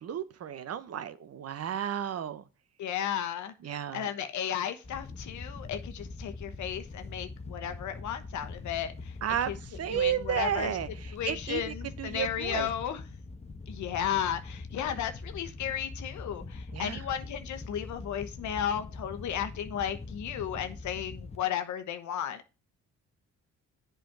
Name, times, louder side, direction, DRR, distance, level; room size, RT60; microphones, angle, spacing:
voice 1, 0.0-2.4 3.6-4.1 9.2-12.7 16.7-17.0, right 9 dB, 55° right, 0.9 m, -33 dB
voice 2, 2.8-9.1 9.5-9.6 9.9-10.7 11.1-13.0 13.7-22.4, left 9 dB, 75° left, 1.0 m, -34 dB
Wind / Boat Water vehicle, 4.8-21.4, left 3 dB, 20° left, 1.0 m, -43 dB
7.8 x 5.1 x 5.9 m
cardioid pair, 90°, 30 cm